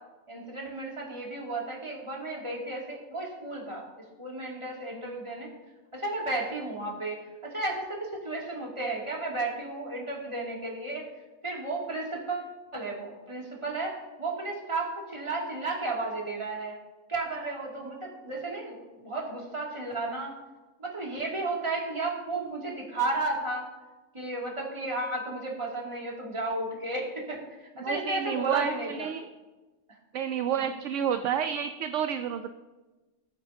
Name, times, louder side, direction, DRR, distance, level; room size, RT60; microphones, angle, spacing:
voice 1, 0.3-3.9 4.2-5.5 5.9-7.2 7.4-11.0 11.4-16.8 17.1-20.3 20.8-23.7 24.1-29.1 30.5-30.7, right 2 dB, 20° right, -3 dB, 2.2 m, -33 dB
voice 2, 27.8-29.3 30.1-32.5, right 8 dB, 70° right, 8 dB, 0.9 m, -30 dB
20.5 x 8.5 x 2.6 m, 1.2 s
omnidirectional pair, 1.4 m